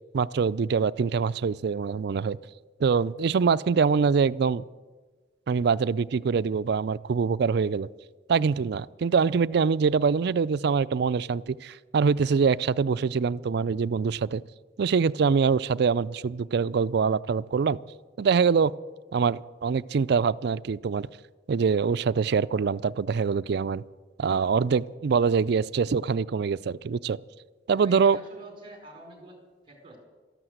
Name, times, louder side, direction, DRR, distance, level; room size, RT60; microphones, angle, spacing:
voice 1, 0.1-2.4 2.8-4.6 5.5-7.9 8.3-14.4 14.8-17.8 18.2-18.7 19.1-21.1 21.5-23.8 24.2-27.2 27.7-28.2, right 5 dB, 65° right, 18 dB, 0.4 m, -24 dB
voice 2, 27.7-29.4 29.6-30.0, right 1 dB, 30° right, 2 dB, 4.5 m, -46 dB
13.5 x 12.0 x 8.0 m, 1.3 s
head